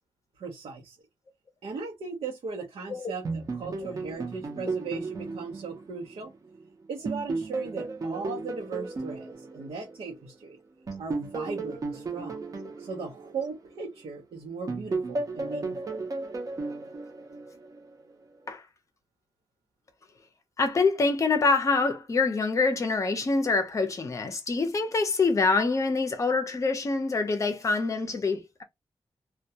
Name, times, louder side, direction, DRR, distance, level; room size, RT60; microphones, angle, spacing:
voice 1, 0.4-1.0 1.6-6.3 6.9-10.6 11.0-12.4 12.8-16.0, right 4 dB, 85° right, 0.7 m, -38 dB
sound 1, 3.2-6.6 7.0-10.3 10.9-14.2 14.7-17.9, right 3 dB, 35° right, 0.6 m, -34 dB
voice 2, 20.6-28.6, left 4 dB, 35° left, 0.5 m, -25 dB
2.2 x 2.2 x 2.7 m
wide cardioid pair, 165°, 10 cm